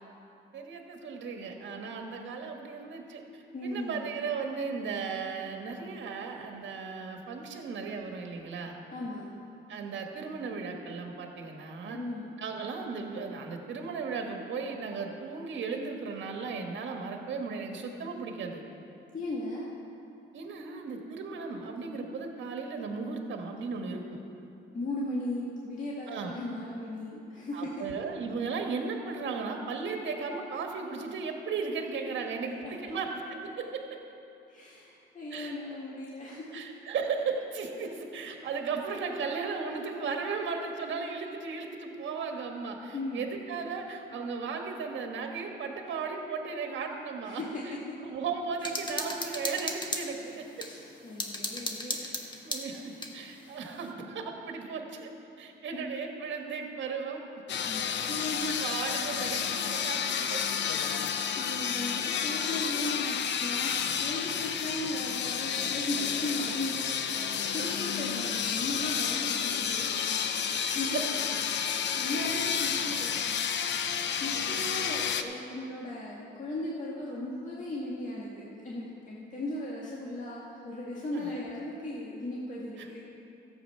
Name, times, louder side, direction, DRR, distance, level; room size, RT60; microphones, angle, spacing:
voice 1, 0.5-8.8 9.7-12.0 12.4-18.6 20.3-24.2 26.1-26.3 27.5-34.0 35.3-35.6 36.5-47.6 48.0-50.7 52.0-52.2 52.4-55.1 55.4-60.6 70.5-71.0 71.6-71.9 73.9-74.1 74.4-74.6 81.1-81.5 81.8-82.0 82.8-83.0, right 5 dB, 70° right, 3 dB, 1.5 m, -36 dB
voice 2, 3.5-4.1 8.9-9.3 11.9-12.3 19.1-19.7 24.7-27.8 32.6-32.9 34.5-36.5 42.9-43.3 47.3-47.8 50.5-52.4 55.7-55.8 57.7-58.8 60.9-71.0 71.5-83.0, left 1 dB, 40° left, -5 dB, 1.9 m, -37 dB
sound 1, 48.6-50.7 51.2-53.2, left 2 dB, 20° left, 1.4 m, -35 dB
sound 2, 57.5-75.2, left 7 dB, 65° left, 0.7 m, -31 dB
13.5 x 8.1 x 5.6 m, 2.8 s
cardioid pair, 90°, 20 cm